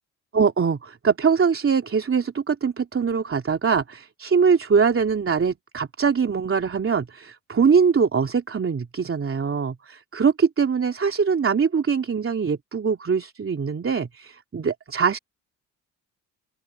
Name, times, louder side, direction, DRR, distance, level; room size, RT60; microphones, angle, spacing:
voice 1, 0.3-15.2, right 6 dB, 35° right, 3.0 m, -22 dB
open air
supercardioid pair, 70°, 36 cm